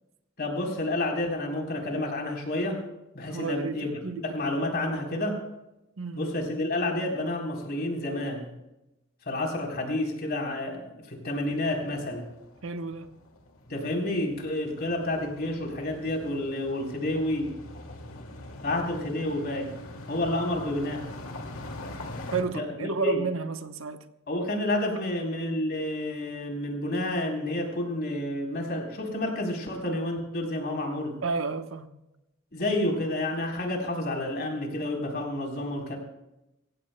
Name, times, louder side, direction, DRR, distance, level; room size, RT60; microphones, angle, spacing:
voice 1, 0.4-2.8 3.1-5.4 6.1-8.5 9.3-12.3 13.7-17.6 18.6-19.7 20.1-21.1 22.5-23.2 24.3-31.2 32.5-36.0, left 1 dB, 50° left, 3.8 m, -30 dB
voice 2, 3.3-4.2 4.6-4.7 6.0-6.3 12.6-13.1 22.3-24.0 31.2-31.9, right 4 dB, 70° right, 1.0 m, -31 dB
sound 1, 11.3-22.4, left 1 dB, 75° left, 2.3 m, -43 dB
25.0 x 16.0 x 2.2 m
head